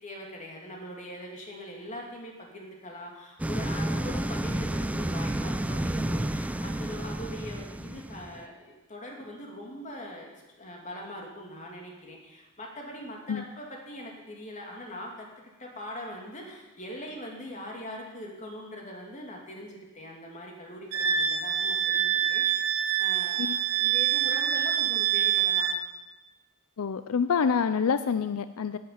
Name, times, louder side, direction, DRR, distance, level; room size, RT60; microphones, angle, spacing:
voice 1, 0.0-15.3 15.6-25.7, left 1 dB, 35° left, 0 dB, 2.8 m, -42 dB
sound 1, 3.4-8.4, right 1 dB, 5° right, 0.4 m, -31 dB
Wind instrument woodwind instrument, 20.9-25.8, right 9 dB, 80° right, 0.9 m, -26 dB
voice 2, 26.8-28.8, left 6 dB, 80° left, 12 dB, 0.5 m, -27 dB
10.5 x 9.7 x 8.7 m, 1.1 s
head